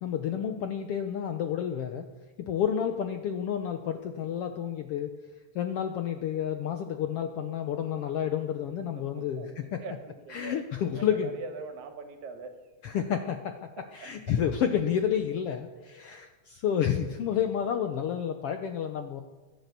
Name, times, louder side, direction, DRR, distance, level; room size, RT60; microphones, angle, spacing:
voice 1, 0.0-2.0 2.5-5.1 5.5-9.8 10.3-11.3 12.8-13.5 13.9-19.2, left 9 dB, 70° left, 6 dB, 1.4 m, -30 dB
voice 2, 8.9-10.6 10.9-13.0 13.8-14.1, right 4 dB, 70° right, 6 dB, 2.9 m, -43 dB
23.5 x 8.8 x 6.8 m, 1.2 s
omnidirectional pair, 3.5 m